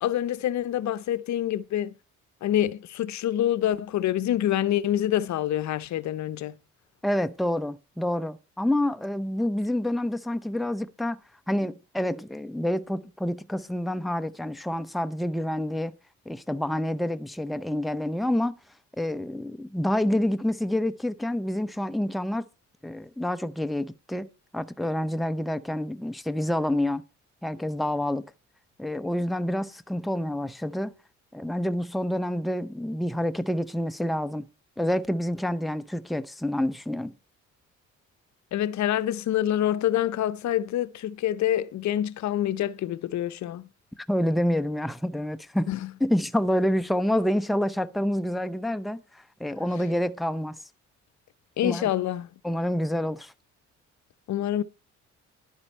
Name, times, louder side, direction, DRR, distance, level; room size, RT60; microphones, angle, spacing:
voice 1, 0.0-2.0 2.4-6.6 38.5-43.7 45.7-45.9 51.6-52.3 54.3-54.6, left 12 dB, 65° left, 0.7 m, -26 dB
voice 2, 7.0-11.2 11.5-15.9 16.3-18.5 19.0-22.5 22.8-27.0 27.4-28.2 28.8-30.9 31.3-34.5 34.8-37.1 44.1-45.7 46.0-50.6 51.6-51.9 52.4-53.3, left 1 dB, ahead, 0.6 m, -28 dB
11.0 x 9.6 x 4.4 m
cardioid pair, 90°, 30 cm